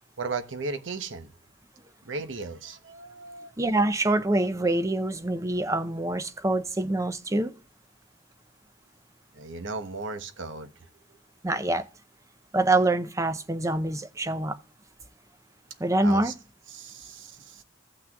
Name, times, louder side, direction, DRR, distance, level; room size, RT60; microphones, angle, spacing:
voice 1, 0.2-1.3 2.1-3.5 9.3-10.7 16.0-16.3 16.7-17.6, right 3 dB, 65° right, 0.9 m, -36 dB
voice 2, 3.6-7.5 11.4-11.8 12.5-14.6 15.8-16.3, right 2 dB, 15° right, 0.5 m, -25 dB
15.5 x 6.0 x 2.3 m
head